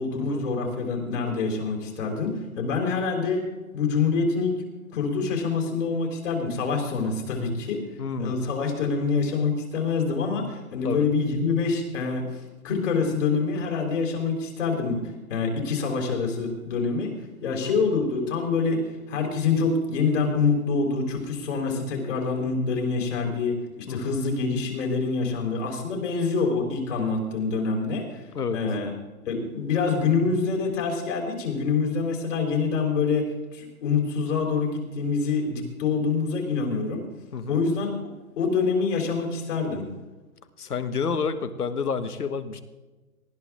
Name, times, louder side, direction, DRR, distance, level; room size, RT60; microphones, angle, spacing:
voice 1, 0.0-3.5 3.7-4.5 4.9-7.8 8.2-15.0 15.3-17.2 17.4-28.2 28.5-28.9 29.3-37.0 37.5-37.9 38.4-39.9, left 4 dB, 55° left, 1 dB, 4.1 m, -26 dB
voice 2, 8.0-8.3 10.8-11.0 17.5-17.7 23.9-24.1 28.3-28.6 37.3-37.6 40.6-42.6, left 5 dB, 85° left, 11 dB, 1.6 m, -29 dB
19.5 x 12.5 x 3.6 m, 1.2 s
hypercardioid pair, 155°, 45 cm